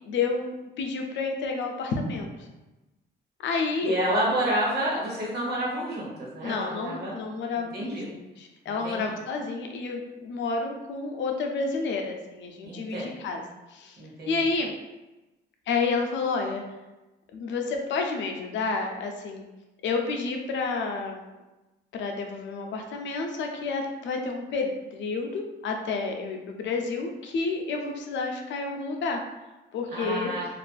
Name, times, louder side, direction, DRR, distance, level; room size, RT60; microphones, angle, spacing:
voice 1, 0.0-2.3 3.4-3.9 6.4-13.4 13.7-14.0 14.3-14.7 15.7-16.6 17.3-19.4 19.8-21.3 21.9-29.2 29.7-30.3, left 4 dB, 70° left, 3 dB, 0.4 m, -30 dB
voice 2, 3.8-7.2 7.7-8.1 8.7-9.1 12.6-13.1 14.0-14.4 29.9-30.5, right 1 dB, 55° right, -4 dB, 1.0 m, -29 dB
2.4 x 2.4 x 2.3 m, 1.1 s
cardioid pair, 90°, 20 cm